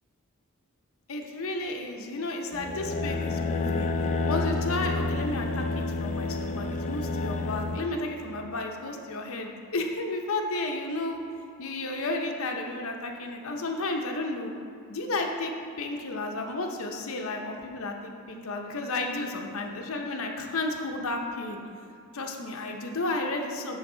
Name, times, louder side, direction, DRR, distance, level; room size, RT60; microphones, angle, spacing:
voice 1, 1.1-3.9 4.2-11.2 11.6-14.5 14.9-15.5 15.8-21.6 22.1-23.8, left 2 dB, 65° left, 2 dB, 0.7 m, -32 dB
sound 1, 2.5-7.8, left 3 dB, 30° left, 0.3 m, -29 dB
9.8 x 4.0 x 3.9 m, 2.5 s
head